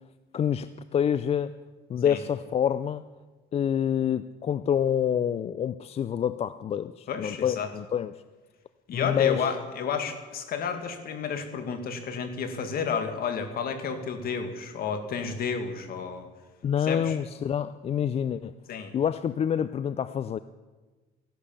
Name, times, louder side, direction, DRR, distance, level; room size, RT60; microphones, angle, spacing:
voice 1, 0.3-1.5 1.9-3.0 3.5-8.1 8.9-9.5 16.6-18.5 18.9-20.4, left 9 dB, 35° left, 14 dB, 0.4 m, -27 dB
voice 2, 7.1-7.7 8.9-16.3 16.8-17.2 18.7-18.9, left 6 dB, 55° left, 7 dB, 2.1 m, -31 dB
15.5 x 11.5 x 7.1 m, 1.3 s
cardioid pair, 125°, 19 cm